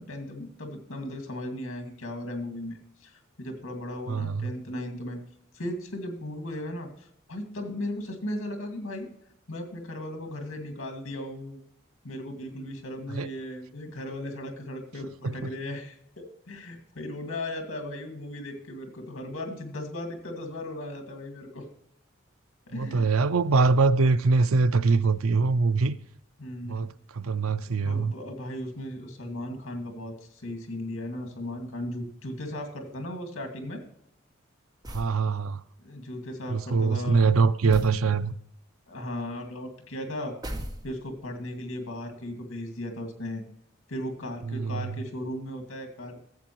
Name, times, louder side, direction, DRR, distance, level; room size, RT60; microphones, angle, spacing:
voice 1, 0.0-5.2 5.5-9.1 9.5-11.6 12.0-21.7 22.7-23.1 26.4-26.9 27.8-33.8 35.8-37.2 38.9-40.3 40.8-43.4 43.9-46.2, left 1 dB, 75° left, 2.0 m, -36 dB
voice 2, 4.1-4.5 13.1-13.3 15.2-15.4 22.7-25.9 26.6-28.1 34.9-35.6 36.5-38.4 44.5-45.0, right 4 dB, 85° right, 0.5 m, -23 dB
sound 1, 34.8-35.2 37.7-38.0 40.4-41.2, equal, 20° right, 0.7 m, -37 dB
14.0 x 7.6 x 3.0 m
head